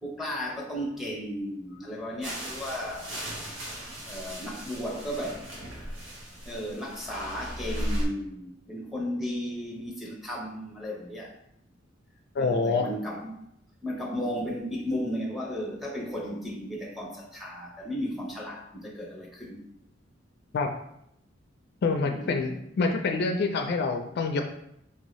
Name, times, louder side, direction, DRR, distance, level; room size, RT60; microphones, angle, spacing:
voice 1, 0.0-3.1 4.0-5.4 6.5-11.3 12.4-13.4 13.8-19.6 22.0-22.3, equal, ahead, -2 dB, 0.7 m, -34 dB
sound 1, 2.2-8.0, equal, 85° right, 1.1 m, -36 dB
voice 2, 12.4-12.9 20.5-20.7 21.8-24.4, left 4 dB, 55° left, 5 dB, 0.4 m, -26 dB
4.4 x 2.7 x 3.0 m, 0.76 s
head